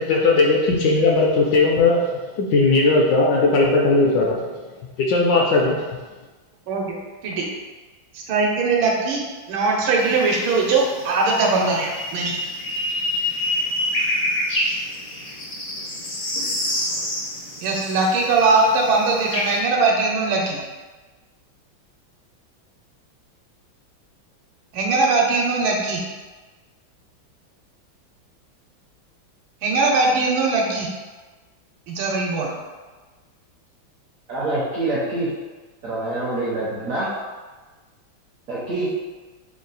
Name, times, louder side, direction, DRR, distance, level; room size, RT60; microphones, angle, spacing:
voice 1, 0.0-4.5 5.0-5.8, left 3 dB, 75° left, -1 dB, 1.1 m, -18 dB
voice 2, 8.1-9.2 9.5-12.4 17.6-20.6 24.7-26.0 29.6-30.9 31.9-32.5, right 3 dB, 85° right, -1 dB, 1.5 m, -20 dB
sound 1, 10.0-19.6, left 1 dB, 55° left, 0.5 m, -27 dB
voice 3, 34.3-35.3 35.8-37.1 38.5-38.9, right 2 dB, 65° right, -6 dB, 0.8 m, -25 dB
3.7 x 2.3 x 3.9 m, 1.3 s
omnidirectional pair, 2.2 m